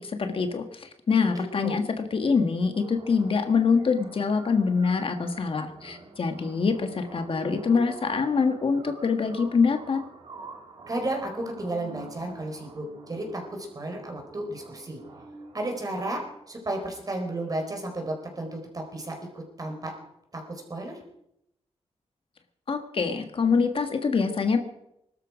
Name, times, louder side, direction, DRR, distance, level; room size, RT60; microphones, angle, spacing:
voice 1, 0.0-10.0 22.7-24.6, left 5 dB, 55° left, 6 dB, 1.5 m, -25 dB
voice 2, 1.3-1.8 10.9-15.0 15.5-16.2 16.5-19.9 20.3-21.0, right 1 dB, 35° right, 3 dB, 4.4 m, -33 dB
sound 1, 2.7-16.7, right 4 dB, 55° right, 3.6 m, -47 dB
21.0 x 12.5 x 5.0 m, 0.80 s
wide cardioid pair, 110°, 11 cm